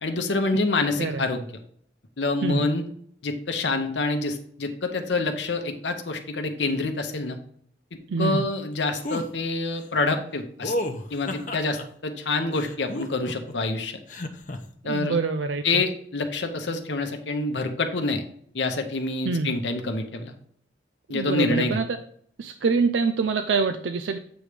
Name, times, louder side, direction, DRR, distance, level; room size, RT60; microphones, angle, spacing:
voice 1, 0.0-1.4 2.2-2.8 3.2-7.4 8.2-10.7 11.1-13.9 14.8-15.2 15.6-18.2 18.5-20.3 21.1-21.8, left 3 dB, 85° left, 5 dB, 0.9 m, -27 dB
voice 2, 8.1-8.5 14.8-15.8 19.3-19.6 21.1-21.8 22.4-24.2, right 4 dB, 85° right, 8 dB, 0.5 m, -25 dB
sound 1, 9.0-9.3 10.6-11.8 12.5-13.5 14.1-14.6, left 1 dB, 45° left, 0.7 m, -31 dB
8.0 x 3.3 x 5.0 m, 0.64 s
head